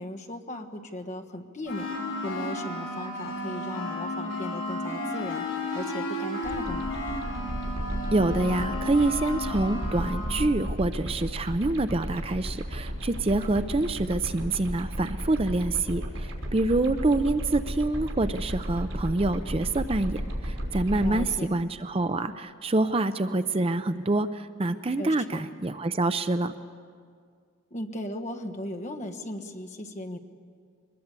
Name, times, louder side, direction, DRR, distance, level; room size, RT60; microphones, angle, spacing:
voice 1, 0.0-1.9 2.2-5.5 5.7-6.9 21.0-21.5 25.0-25.4 27.7-30.2, left 1 dB, 35° left, 6 dB, 1.4 m, -37 dB
sound 1, 1.7-10.5, left 1 dB, 75° left, 7.9 m, -33 dB
sound 2, 6.4-21.3, equal, 75° right, 5.6 m, -34 dB
voice 2, 8.1-26.5, right 2 dB, 30° right, 11 dB, 0.5 m, -26 dB
24.0 x 21.0 x 8.3 m, 2.1 s
head